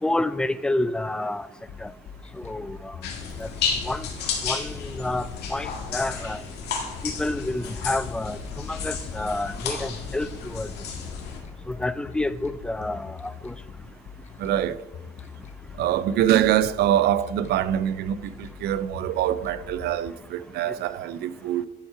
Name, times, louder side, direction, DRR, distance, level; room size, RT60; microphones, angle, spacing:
voice 1, 0.0-1.5 1.8-1.9 2.3-3.0 3.4-3.5 3.8-4.1 4.4-6.4 7.0-10.7 11.7-13.5, left 2 dB, 5° left, 0.3 m, -29 dB
sound 1, 1.7-20.1, left 7 dB, 45° left, 0.6 m, -43 dB
sound 2, 3.0-11.4, left 6 dB, 75° left, 1.7 m, -32 dB
voice 2, 14.4-14.8 15.8-21.7, right 11 dB, 70° right, 0.5 m, -24 dB
11.0 x 4.4 x 4.7 m
cardioid pair, 110°, 17 cm